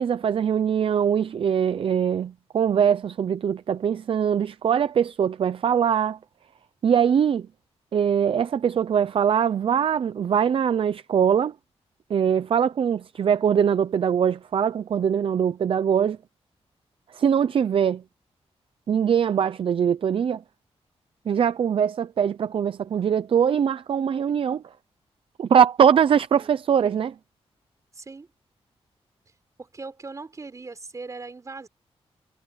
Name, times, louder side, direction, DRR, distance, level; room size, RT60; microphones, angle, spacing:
voice 1, 0.0-6.2 6.8-7.5 7.9-11.6 12.1-16.2 17.1-18.0 18.9-20.4 21.3-24.7 25.4-27.2, right 8 dB, 55° right, 0.6 m, -22 dB
voice 2, 27.9-28.3 29.6-31.7, right 3 dB, 30° right, 4.7 m, -39 dB
wide cardioid pair, 145°, 11 cm